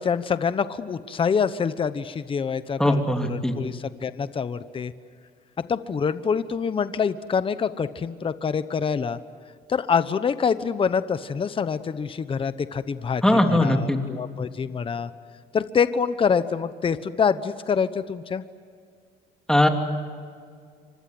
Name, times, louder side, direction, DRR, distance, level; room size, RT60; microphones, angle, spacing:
voice 1, 0.0-4.9 5.7-9.2 9.7-15.1 15.5-18.4, left 6 dB, 30° left, 12 dB, 1.0 m, -26 dB
voice 2, 2.8-3.6 13.2-14.0 19.5-19.7, left 1 dB, 5° left, 4 dB, 3.1 m, -20 dB
29.0 x 25.0 x 7.9 m, 2.1 s
cardioid pair, 110°, 17 cm